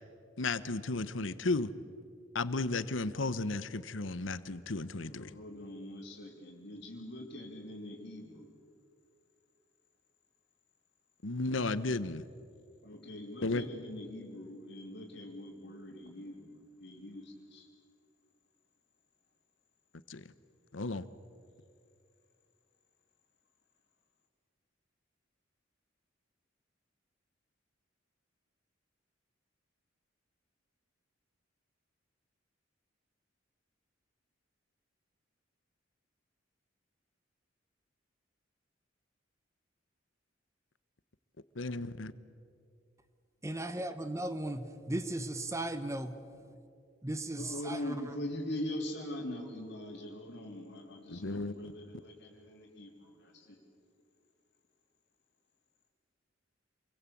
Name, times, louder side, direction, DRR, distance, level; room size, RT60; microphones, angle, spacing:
voice 1, 0.4-1.7 2.3-5.3 11.2-12.2 13.4-13.6 20.1-20.2 20.7-21.0 41.6-42.1 51.1-51.5, left 3 dB, 75° left, 15 dB, 1.0 m, -34 dB
voice 2, 5.1-8.6 12.6-17.7 47.4-53.6, left 1 dB, 55° left, -5 dB, 3.7 m, -42 dB
voice 3, 43.4-46.2 47.0-47.8, right 1 dB, 15° right, 10 dB, 1.1 m, -36 dB
28.0 x 22.5 x 8.5 m, 2.4 s
head